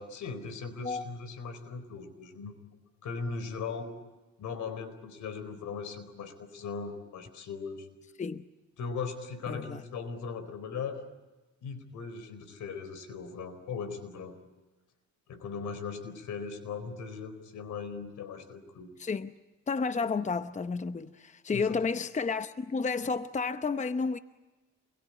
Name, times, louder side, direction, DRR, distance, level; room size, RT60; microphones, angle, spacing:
voice 1, 0.0-2.6 3.0-3.9 4.4-7.9 8.8-11.0 11.6-14.4 15.3-18.9 21.5-21.8, left 5 dB, 75° left, 4.3 m, -39 dB
voice 2, 9.5-9.8 19.0-19.3 19.7-24.2, left 4 dB, 25° left, 0.8 m, -31 dB
27.5 x 22.0 x 9.8 m
cardioid pair, 90°, 30 cm